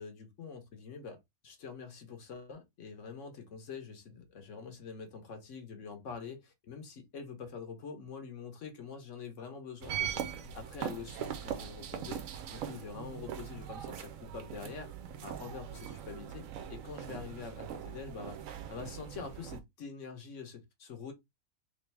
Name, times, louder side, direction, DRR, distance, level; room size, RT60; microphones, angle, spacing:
voice 1, 0.0-10.2 10.5-14.9 15.2-16.4 16.7-18.4 18.7-21.1, left 5 dB, 60° left, 1.2 m, -45 dB
sound 1, 9.8-19.6, right 9 dB, 70° right, 1.0 m, -41 dB
3.4 x 3.1 x 3.2 m
omnidirectional pair, 1.5 m